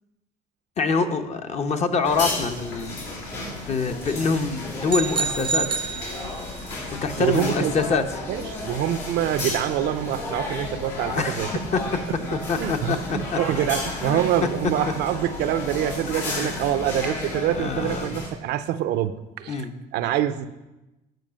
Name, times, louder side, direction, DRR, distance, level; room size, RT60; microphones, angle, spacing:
voice 1, 0.8-3.0 3.7-5.9 7.0-8.3 11.1-11.4 11.7-11.8 12.5-13.4 14.0-14.2 16.3-16.7 17.5-18.1 19.5-19.7, left 4 dB, 40° left, 7 dB, 0.8 m, -25 dB
sound 1, 2.0-18.3, left 2 dB, 80° left, 3.0 m, -33 dB
sound 2, 4.9-6.7, right 5 dB, 30° right, 0.4 m, -28 dB
voice 2, 7.2-7.7 8.3-11.5 12.5-20.5, right 11 dB, 80° right, 11 dB, 0.5 m, -25 dB
9.3 x 4.9 x 6.3 m, 1.0 s
cardioid pair, 110°, 17 cm